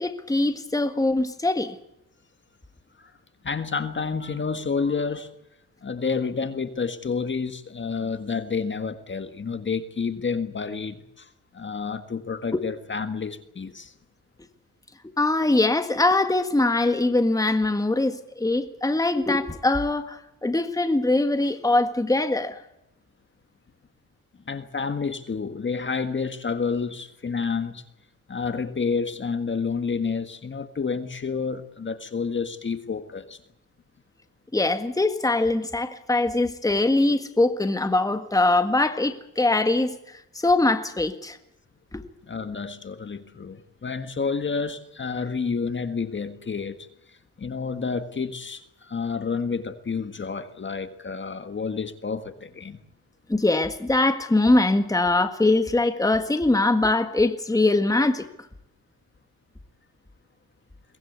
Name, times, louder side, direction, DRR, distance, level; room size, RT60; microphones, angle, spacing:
voice 1, 0.0-1.8 12.5-12.6 15.0-22.6 34.5-41.4 41.9-42.0 53.3-58.3, left 2 dB, 10° left, 1.7 m, -22 dB
voice 2, 3.4-5.3 5.8-13.9 24.5-27.8 28.3-33.4 42.3-46.9 47.4-52.8, left 5 dB, 30° left, 1.7 m, -29 dB
23.0 x 20.0 x 8.2 m
cardioid pair, 90°, 35 cm